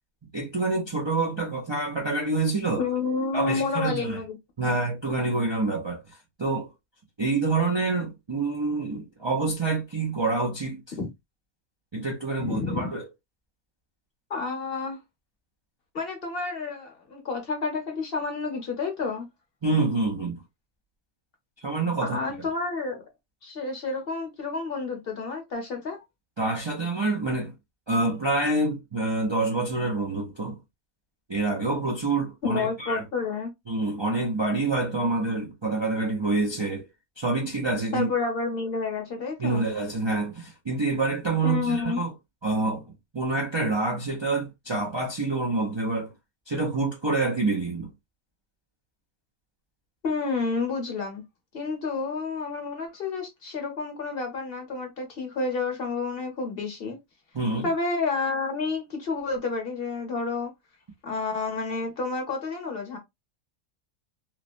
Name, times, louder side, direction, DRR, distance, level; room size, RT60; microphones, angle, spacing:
voice 1, 0.3-2.8 3.3-4.2 4.6-6.0 6.4-6.7 7.2-10.8 11.9-13.1 19.6-20.4 21.6-22.2 26.4-27.5 27.9-30.6 31.3-33.0 33.7-36.9 37.2-38.1 39.4-42.1 42.4-42.9 43.1-46.1 46.5-47.9 57.3-57.7, right 3 dB, 35° right, 0.4 m, -27 dB
voice 2, 2.8-4.4 4.6-4.8 11.0-11.1 12.4-12.9 14.3-15.0 15.9-19.3 22.0-23.0 23.4-26.0 32.4-33.5 37.9-39.6 41.4-42.0 50.0-51.2 51.5-57.0 57.6-60.5 61.0-63.0, left 4 dB, 50° left, 1.0 m, -30 dB
3.0 x 2.1 x 2.5 m
omnidirectional pair, 1.3 m